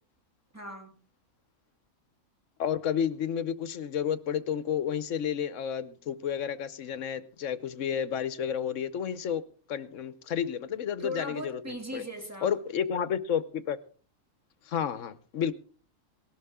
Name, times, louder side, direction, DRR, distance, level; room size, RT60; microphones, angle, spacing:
voice 1, 0.5-1.0 11.0-12.5, equal, 10° right, 2 dB, 2.4 m, -38 dB
voice 2, 2.6-9.4 9.7-12.0 12.4-13.8 14.7-15.5, left 8 dB, 70° left, 15 dB, 1.1 m, -31 dB
18.5 x 12.5 x 3.6 m, 0.41 s
omnidirectional pair, 1.4 m